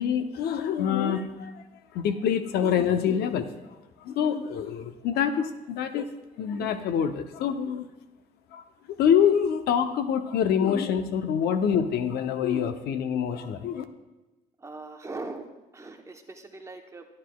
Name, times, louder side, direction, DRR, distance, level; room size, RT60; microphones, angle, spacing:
voice 1, 0.0-1.6 1.9-3.5 4.0-6.1 6.4-7.9 8.5-13.8, left 8 dB, 70° left, 9 dB, 0.6 m, -26 dB
voice 2, 14.6-17.1, right 3 dB, 15° right, 3 dB, 0.9 m, -40 dB
12.0 x 9.4 x 2.3 m, 1.1 s
cardioid pair, 110°, 17 cm